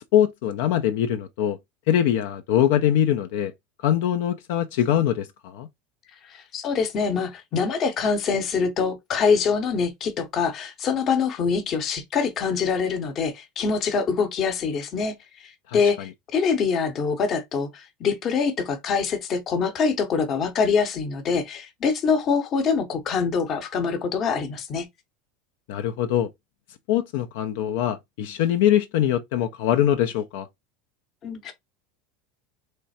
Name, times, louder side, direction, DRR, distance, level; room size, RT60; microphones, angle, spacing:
voice 1, 0.1-1.6 1.9-3.5 3.8-5.7 15.7-16.1 25.7-26.3 26.9-30.5, left 11 dB, 65° left, 0.5 m, -23 dB
voice 2, 6.3-15.1 15.7-24.9 31.2-31.5, left 5 dB, 30° left, 0.9 m, -24 dB
3.7 x 3.2 x 4.2 m
supercardioid pair, 170°, 0 cm